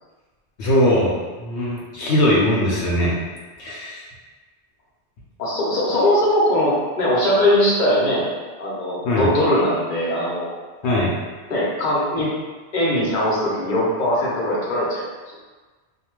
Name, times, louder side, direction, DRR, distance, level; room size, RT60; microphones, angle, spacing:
voice 1, 0.6-1.1 1.4-3.2 3.6-4.0 9.0-9.3 10.8-11.1, left 1 dB, 75° left, -5 dB, 0.9 m, -20 dB
voice 2, 5.4-8.2 8.6-10.5 11.5-12.3 12.7-15.0, left 1 dB, 45° left, -7 dB, 0.9 m, -20 dB
2.6 x 2.2 x 3.0 m, 1.3 s
omnidirectional pair, 1.2 m